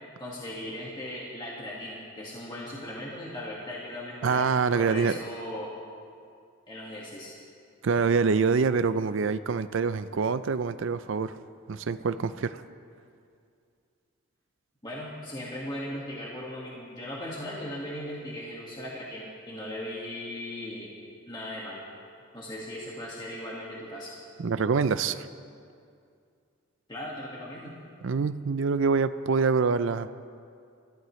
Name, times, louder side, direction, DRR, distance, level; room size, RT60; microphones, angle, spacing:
voice 1, 0.2-5.7 6.7-7.3 14.8-20.9 21.2-21.8 22.3-24.1 26.9-27.7, left 1 dB, 20° left, -5 dB, 1.8 m, -38 dB
voice 2, 4.2-5.2 7.8-11.4 11.7-12.6 24.4-25.3 28.0-30.1, right 5 dB, 65° right, 12 dB, 0.4 m, -25 dB
28.0 x 14.5 x 3.2 m, 2.4 s
head